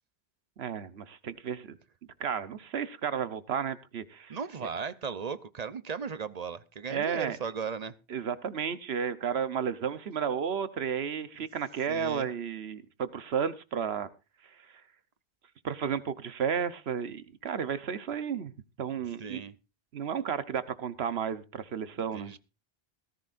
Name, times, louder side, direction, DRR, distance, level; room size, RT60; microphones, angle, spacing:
voice 1, 0.6-1.7 2.2-4.7 6.9-7.4 8.1-14.1 14.6-14.7 15.6-19.4 19.9-22.3, right 7 dB, 80° right, 14 dB, 1.2 m, -33 dB
voice 2, 4.3-7.9 11.9-12.3 19.2-19.5 22.1-22.4, right 6 dB, 45° right, 14 dB, 0.8 m, -36 dB
18.0 x 14.5 x 2.6 m, 0.29 s
omnidirectional pair, 1.0 m